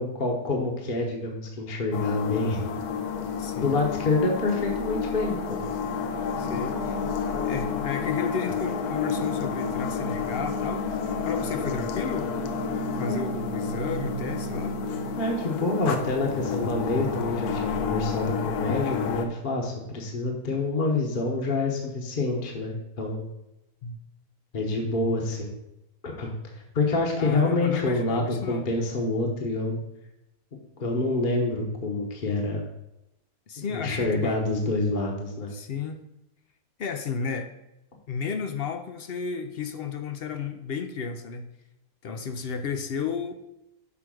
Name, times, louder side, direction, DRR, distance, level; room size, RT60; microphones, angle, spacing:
voice 1, 0.0-2.7 3.6-5.6 13.0-13.3 15.2-23.2 24.5-25.5 26.0-29.8 30.8-32.7 33.7-35.5, left 2 dB, 40° left, 0 dB, 1.1 m, -27 dB
sound 1, 1.9-19.3, left 5 dB, 85° left, 1.3 m, -30 dB
voice 2, 3.4-3.8 6.4-7.0 7.4-10.9 11.2-12.3 13.0-14.8 23.8-24.0 27.2-28.7 33.5-34.4 35.5-36.0 36.8-37.5 38.1-41.5 42.0-43.3, left 6 dB, 60° left, 8 dB, 0.6 m, -33 dB
6.1 x 4.6 x 6.2 m, 0.87 s
omnidirectional pair, 1.6 m